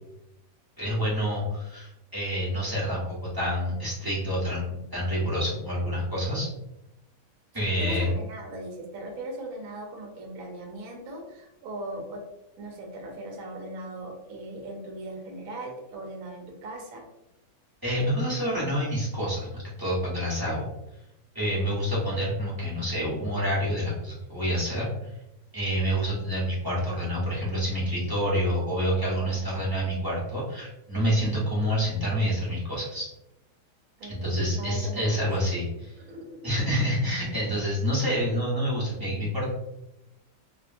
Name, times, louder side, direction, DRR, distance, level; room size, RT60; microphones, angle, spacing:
voice 1, 0.8-6.5 7.5-8.1 17.8-20.7 21.3-24.9 25.5-33.1 34.1-36.0 36.4-39.5, equal, 20° right, -9 dB, 0.6 m, -28 dB
voice 2, 7.5-12.2 12.6-17.0 21.5-21.8 34.0-35.3 36.0-36.5, right 1 dB, 65° right, 1 dB, 1.0 m, -39 dB
2.8 x 2.5 x 2.4 m, 0.90 s
omnidirectional pair, 1.8 m